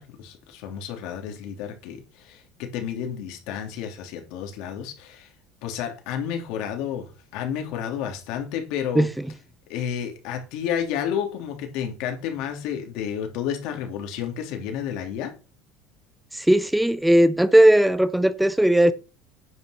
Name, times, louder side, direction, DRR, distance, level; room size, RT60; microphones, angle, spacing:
voice 1, 0.0-5.3 5.6-9.1 9.7-15.3, left 8 dB, 70° left, 3.0 m, -31 dB
voice 2, 16.3-18.9, right 1 dB, 5° right, 0.5 m, -17 dB
9.6 x 5.6 x 5.8 m
supercardioid pair, 120°, 0 cm